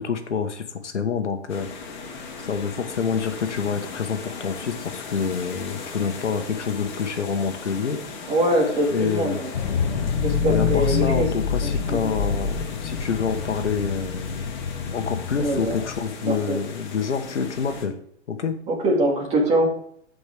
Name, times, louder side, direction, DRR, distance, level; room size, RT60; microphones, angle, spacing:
voice 1, 0.0-1.7 2.4-8.0 8.9-9.4 10.5-14.5 14.9-17.9 18.3-18.6, left 6 dB, 90° left, 7 dB, 1.5 m, -27 dB
sound 1, 1.5-17.9, left 4 dB, 40° left, 2.5 m, -38 dB
voice 2, 8.3-9.5 10.2-11.3 11.6-12.1 15.4-15.8 16.2-16.6 18.7-19.7, right 1 dB, 20° right, 0 dB, 2.2 m, -23 dB
sound 2, 9.5-16.0, left 6 dB, 65° left, 1.2 m, -26 dB
14.5 x 5.3 x 3.5 m, 0.64 s
hypercardioid pair, 145°, 34 cm